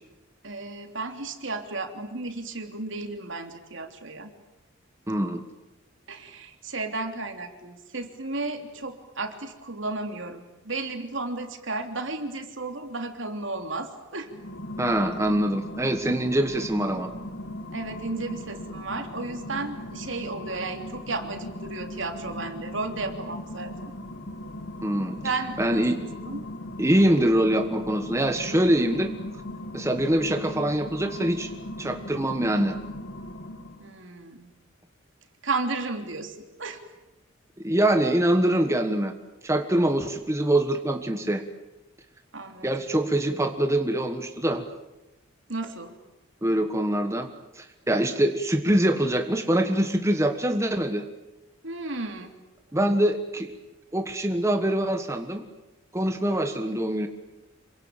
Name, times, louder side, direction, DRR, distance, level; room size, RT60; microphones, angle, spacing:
voice 1, 0.4-4.3 6.1-14.3 17.7-23.9 25.2-26.4 33.8-34.5 35.4-36.8 42.3-42.7 45.5-45.9 51.6-52.3, right 3 dB, 70° right, 5 dB, 3.2 m, -33 dB
voice 2, 5.1-5.4 14.8-17.1 24.8-25.2 25.6-26.0 26.8-29.1 29.7-31.5 31.8-32.8 37.6-39.1 39.4-41.4 42.6-44.6 46.4-47.3 47.5-51.0 52.7-53.5 53.9-55.4 55.9-57.1, right 1 dB, 15° right, 6 dB, 1.4 m, -24 dB
sound 1, 14.2-34.0, left 1 dB, 65° left, 1.9 m, -38 dB
27.0 x 24.0 x 9.0 m, 1.0 s
head